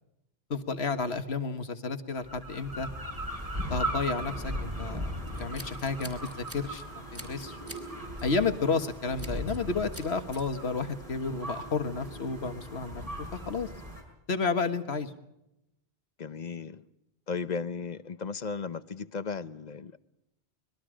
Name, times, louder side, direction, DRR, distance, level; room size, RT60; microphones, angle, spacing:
voice 1, 0.5-2.9 3.5-5.0 5.4-7.6 8.2-13.7 14.3-15.1, left 4 dB, 90° left, 8 dB, 1.8 m, -31 dB
sound 1, 2.2-14.0, right 1 dB, 35° right, 5.2 m, -38 dB
Scissors, 5.3-6.8 7.1-7.9 8.2-8.4 9.2-9.6 9.9-10.4, equal, 15° right, 3.5 m, -46 dB
voice 2, 16.2-16.8 17.3-20.0, left 5 dB, 45° left, 14 dB, 0.9 m, -35 dB
25.5 x 21.5 x 5.1 m, 0.86 s
omnidirectional pair, 1.1 m